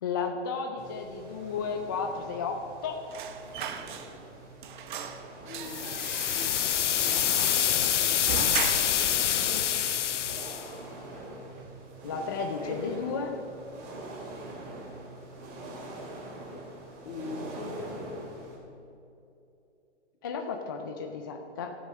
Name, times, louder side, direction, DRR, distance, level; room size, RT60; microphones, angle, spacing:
voice 1, 0.0-3.0 12.0-13.3 20.2-21.7, left 5 dB, 20° left, 4 dB, 0.3 m, -33 dB
sound 1, 0.8-18.6, right 2 dB, 25° right, 2.3 m, -44 dB
sound 2, 3.1-4.4 4.6-9.2 9.5-9.6 9.9-10.7 11.0-11.3 11.6-12.3 12.6-12.7, right 8 dB, 45° right, 0.9 m, -38 dB
voice 2, 5.4-6.0 6.3-6.6 6.9-7.3 7.8-9.1 9.4-9.7 12.6-12.8 13.1-13.2 17.0-18.1, left 4 dB, 65° left, 2 dB, 2.3 m, -42 dB
sound 3, 5.6-10.7, left 10 dB, 85° left, 0.6 m, -26 dB
12.5 x 7.2 x 6.6 m, 2.7 s
hypercardioid pair, 145°, 35 cm